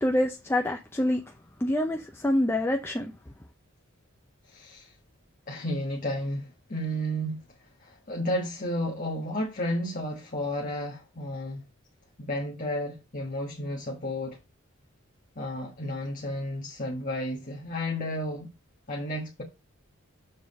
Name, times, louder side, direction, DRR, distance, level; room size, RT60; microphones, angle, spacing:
voice 1, 0.0-1.2 1.6-3.1, left 1 dB, 10° left, 0.6 m, -26 dB
voice 2, 4.4-4.9 5.5-7.4 7.8-11.6 12.2-14.4 15.3-18.5 18.9-19.4, equal, 40° left, 1.3 m, -32 dB
6.9 x 3.8 x 5.3 m
head